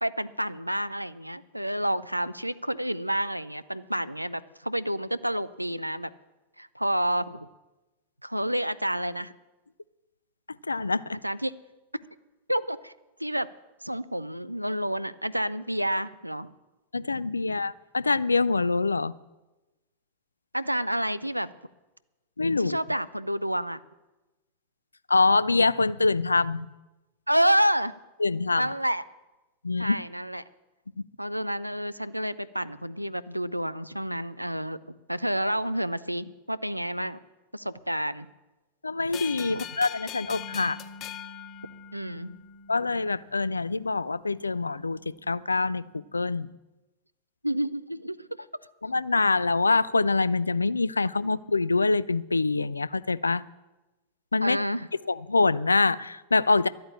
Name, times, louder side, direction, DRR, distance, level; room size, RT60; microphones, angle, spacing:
voice 1, 0.0-6.1 6.6-7.5 8.2-9.3 11.2-11.5 12.5-12.9 13.2-13.5 13.8-16.5 17.4-17.6 20.5-21.5 22.6-23.8 27.3-27.9 28.6-29.0 29.8-30.4 31.2-34.8 35.1-37.2 37.5-38.3 39.5-39.6 41.9-42.3 47.4-48.3 54.4-54.9, equal, 90° right, 0.4 m, -29 dB
voice 2, 10.7-11.2 16.9-19.1 22.4-22.8 25.1-26.7 28.2-28.7 29.6-30.0 38.8-40.8 42.7-46.5 48.8-53.4 54.3-54.6 55.1-56.7, left 3 dB, 80° left, 0.3 m, -25 dB
sound 1, 39.1-42.4, left 12 dB, 35° left, 0.6 m, -41 dB
Bass guitar, 40.2-46.5, left 1 dB, 60° right, 3.1 m, -51 dB
12.0 x 8.6 x 8.6 m
figure-of-eight pair, 90°, 0 cm